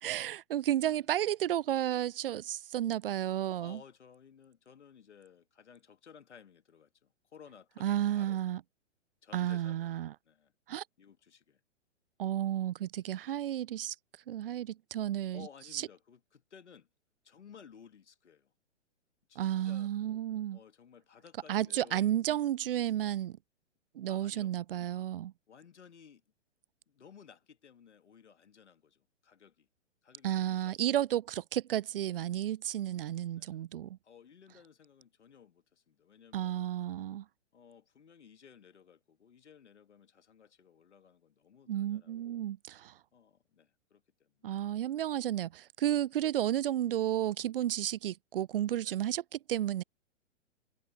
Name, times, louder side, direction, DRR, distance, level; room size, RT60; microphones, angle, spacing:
voice 1, 0.0-3.8 7.8-8.6 9.3-10.1 10.7-10.8 12.2-13.9 14.3-15.5 15.7-15.8 19.4-20.6 21.5-23.4 24.0-25.3 30.2-34.0 36.3-37.2 41.7-42.9 44.4-49.8, right 12 dB, 50° right, 0.5 m, -32 dB
voice 2, 3.6-8.4 9.2-9.9 10.2-10.5 11.0-11.6 13.0-13.3 15.3-16.9 17.2-18.5 19.3-19.9 20.5-22.1 24.1-24.5 25.5-26.2 26.9-29.7 30.0-30.8 33.3-33.6 34.0-36.6 37.5-42.4 43.1-44.6 47.6-47.8 48.8-49.0, left 7 dB, 65° left, 2.3 m, -57 dB
figure-of-eight pair, 120°, 37 cm